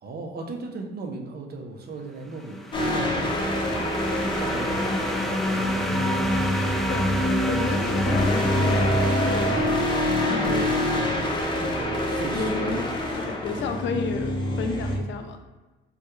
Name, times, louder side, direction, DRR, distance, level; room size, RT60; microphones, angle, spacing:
voice 1, 0.0-6.9 7.7-7.9 10.1-12.8, right 3 dB, 50° right, 3 dB, 0.6 m, -37 dB
sound 1, 2.3-11.0, left 1 dB, ahead, 0.3 m, -29 dB
sound 2, 2.7-15.0, left 1 dB, 25° left, 0.7 m, -26 dB
sound 3, 4.4-9.4, right 1 dB, 80° right, 1.4 m, -38 dB
voice 2, 7.5-9.7 10.3-10.6 12.3-12.9 13.4-15.4, left 4 dB, 70° left, 6 dB, 0.4 m, -31 dB
3.4 x 2.2 x 3.0 m, 1.2 s
cardioid pair, 90°, 20 cm